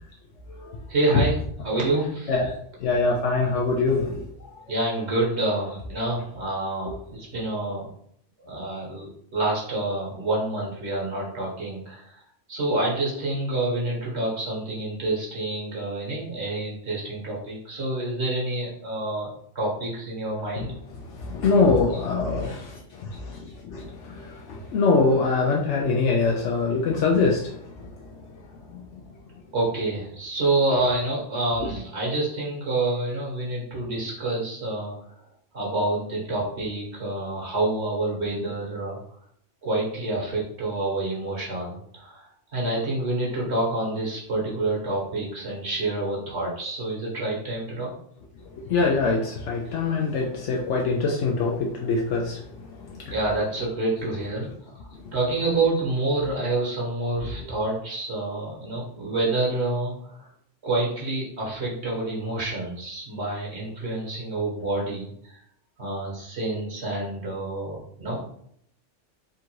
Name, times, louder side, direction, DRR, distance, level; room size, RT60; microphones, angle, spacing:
voice 1, 0.9-1.4 1.6-2.3 4.7-7.9 8.4-12.1 12.5-19.3 19.5-20.7 29.5-34.9 35.5-39.0 39.6-42.2 42.5-47.9 49.6-49.8 53.1-54.5 54.8-60.3 60.6-65.4 65.8-68.2, right 2 dB, 60° right, -3 dB, 1.6 m, -27 dB
voice 2, 2.8-4.3 21.1-27.9 28.7-28.8 48.7-52.4 52.9-53.1, left 4 dB, 75° left, -1 dB, 0.9 m, -24 dB
3.7 x 2.5 x 4.5 m, 0.68 s
omnidirectional pair, 1.2 m